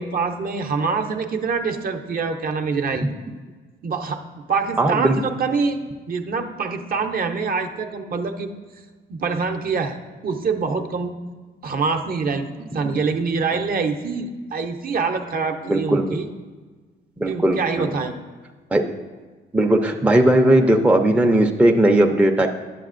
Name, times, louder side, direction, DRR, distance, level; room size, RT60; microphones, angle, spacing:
voice 1, 0.0-3.1 3.8-8.5 9.1-10.0 10.2-11.1 11.6-16.3 17.3-18.1, right 4 dB, 45° right, 5 dB, 0.6 m, -25 dB
voice 2, 4.8-5.2 15.7-16.2 17.2-17.9 18.7-18.8 19.5-22.5, right 1 dB, 5° right, 3 dB, 0.4 m, -17 dB
9.9 x 7.1 x 2.5 m, 1.4 s
cardioid pair, 90°, 20 cm